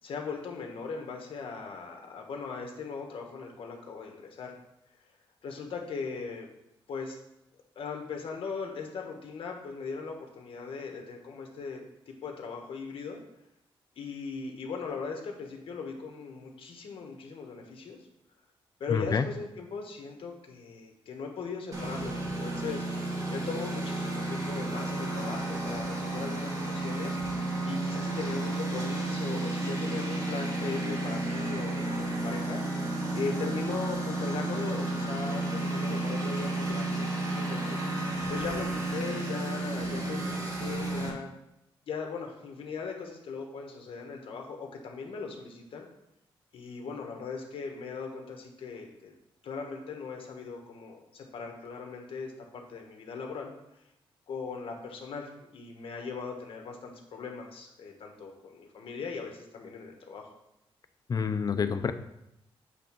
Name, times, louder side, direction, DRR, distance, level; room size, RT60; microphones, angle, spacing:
voice 1, 0.0-4.5 5.4-6.5 6.9-7.2 7.7-11.8 12.1-13.2 14.0-18.0 18.8-22.8 23.3-27.2 27.6-32.6 33.1-37.8 38.3-41.3 41.9-45.9 46.5-49.1 49.4-53.5 54.3-60.3, left 5 dB, 70° left, 2 dB, 1.5 m, -39 dB
voice 2, 18.9-19.3 61.1-61.9, left 6 dB, 40° left, 9 dB, 0.6 m, -27 dB
Engine, 21.7-41.1, right 2 dB, 35° right, 1.8 m, -32 dB
8.1 x 3.7 x 6.1 m, 0.84 s
cardioid pair, 115°, 10 cm